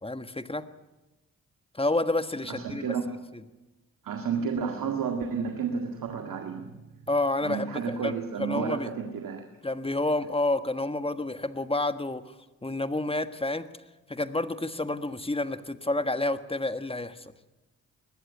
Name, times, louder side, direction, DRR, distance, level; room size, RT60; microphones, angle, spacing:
voice 1, 0.0-0.6 1.7-2.8 7.1-8.1 8.4-8.9 9.6-12.2 12.6-13.7 14.1-17.3, left 2 dB, 15° left, 10 dB, 1.5 m, -29 dB
voice 2, 2.5-3.2 4.0-7.1 7.4-9.4, right 6 dB, 70° right, 4 dB, 2.0 m, -31 dB
20.0 x 15.0 x 9.5 m, 1.1 s
supercardioid pair, 50°, 34 cm